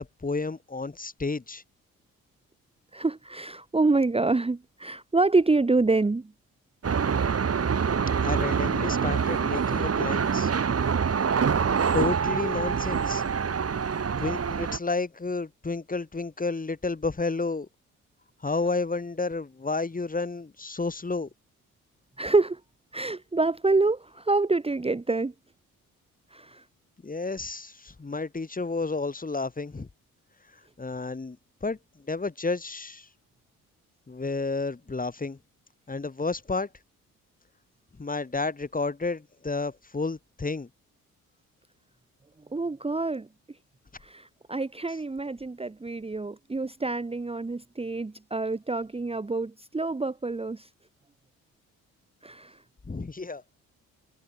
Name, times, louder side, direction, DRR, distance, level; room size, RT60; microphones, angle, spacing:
voice 1, 0.0-1.6 8.2-10.5 11.9-13.2 14.2-17.7 18.4-21.3 27.0-29.9 30.8-31.8 32.0-33.1 34.1-35.4 35.9-36.7 38.0-40.7 52.9-53.4, left 3 dB, 20° left, 2.2 m, -31 dB
voice 2, 2.9-6.3 22.2-22.6 22.9-25.3 26.3-26.6 42.5-43.3 44.0-50.7 52.2-52.6, right 3 dB, 15° right, 1.3 m, -26 dB
sound 1, 6.8-14.8, right 6 dB, 35° right, 2.6 m, -25 dB
figure-of-eight pair, 45°, 42 cm